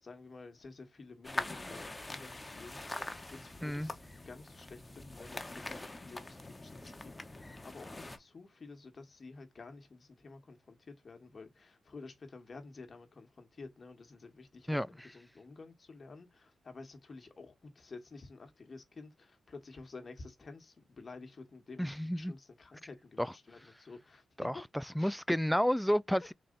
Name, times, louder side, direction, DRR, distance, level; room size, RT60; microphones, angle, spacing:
voice 1, 0.0-24.6 25.0-25.2, left 3 dB, 50° left, 1.4 m, -51 dB
sound 1, 1.2-8.2, left 2 dB, 25° left, 1.1 m, -43 dB
voice 2, 21.8-22.3 23.2-23.3 24.4-26.3, equal, 5° left, 0.3 m, -31 dB
4.2 x 3.1 x 3.9 m
supercardioid pair, 45°, 0 cm